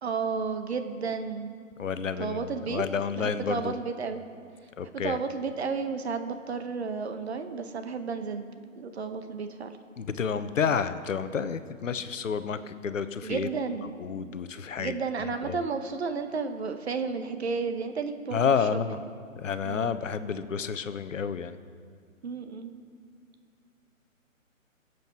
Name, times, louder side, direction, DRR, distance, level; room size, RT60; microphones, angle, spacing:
voice 1, 0.0-1.5 2.2-2.8 3.1-4.2 4.8-8.5 8.8-9.8 13.2-13.9 14.8-19.0 19.6-19.9 22.2-22.7, right 5 dB, 50° right, 8 dB, 1.0 m, -32 dB
voice 2, 1.8-3.7 4.8-5.2 10.0-13.5 14.0-15.0 15.4-15.6 18.3-19.0 19.4-21.6, left 6 dB, 65° left, 12 dB, 0.9 m, -30 dB
22.0 x 7.9 x 4.6 m, 2.2 s
figure-of-eight pair, 140°, 41 cm